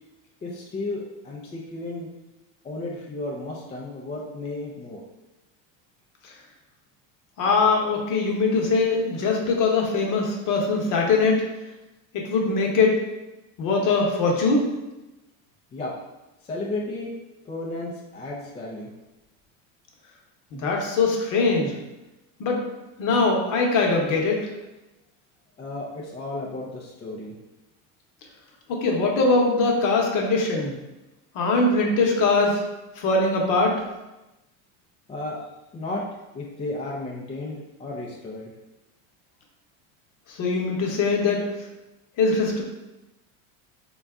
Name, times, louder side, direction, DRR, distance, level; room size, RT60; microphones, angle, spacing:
voice 1, 0.4-2.1 2.6-5.0 15.7-15.9 16.4-17.1 17.4-18.9 25.6-27.4 35.1-35.4 35.7-36.0 36.3-38.5, left 2 dB, 15° left, -3 dB, 0.4 m, -33 dB
voice 2, 7.4-11.4 12.1-13.0 13.6-14.7 20.5-21.8 22.4-22.6 23.0-24.5 28.7-30.7 31.3-32.6 33.0-33.8 40.3-41.4 42.2-42.6, left 3 dB, 50° left, 0 dB, 0.9 m, -22 dB
3.9 x 2.3 x 3.5 m, 1.0 s
supercardioid pair, 130°, 42 cm